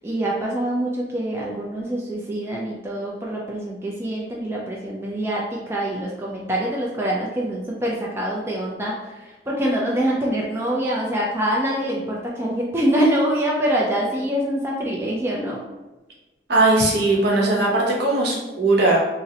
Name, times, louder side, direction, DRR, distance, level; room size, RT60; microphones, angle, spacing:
voice 1, 0.0-15.6, right 1 dB, 15° right, -4 dB, 0.3 m, -25 dB
voice 2, 16.5-19.0, right 2 dB, 65° right, -3 dB, 0.8 m, -19 dB
3.8 x 2.0 x 2.7 m, 1.1 s
head